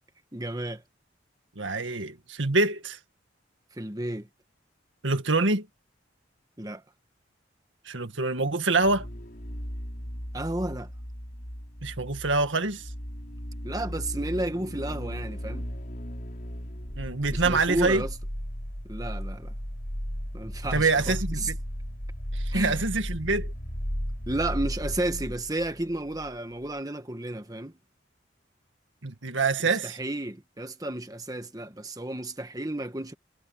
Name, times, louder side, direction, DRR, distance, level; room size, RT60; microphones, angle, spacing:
voice 1, 0.3-0.8 1.8-2.0 3.8-4.3 6.6-6.8 10.3-10.9 13.6-15.6 17.3-18.2 18.9-19.5 20.3-21.5 22.5-22.8 24.3-27.7 29.8-33.1, right 1 dB, 20° right, 1.4 m, -32 dB
voice 2, 1.6-3.0 5.0-5.7 7.9-9.1 11.8-12.8 17.0-18.0 20.7-21.6 22.3-23.5 29.0-30.0, right 3 dB, 85° right, 1.9 m, -25 dB
sound 1, 8.8-26.3 26.6-26.7, equal, 50° left, 6.0 m, -35 dB
head